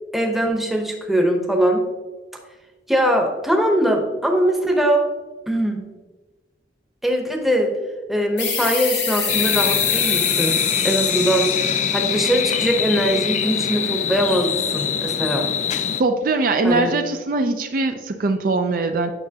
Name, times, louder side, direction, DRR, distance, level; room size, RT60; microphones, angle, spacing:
voice 1, 0.1-1.8 2.9-5.0 5.5-5.8 7.0-7.7 8.1-15.5 16.6-16.9, right 1 dB, ahead, 1 dB, 0.8 m, -21 dB
sound 1, 8.4-13.6, left 6 dB, 80° left, 1.2 m, -27 dB
sound 2, 9.3-16.0, left 8 dB, 40° left, 0.3 m, -23 dB
voice 2, 16.0-19.1, right 3 dB, 50° right, 6 dB, 0.4 m, -21 dB
8.8 x 5.8 x 2.8 m, 1.3 s
head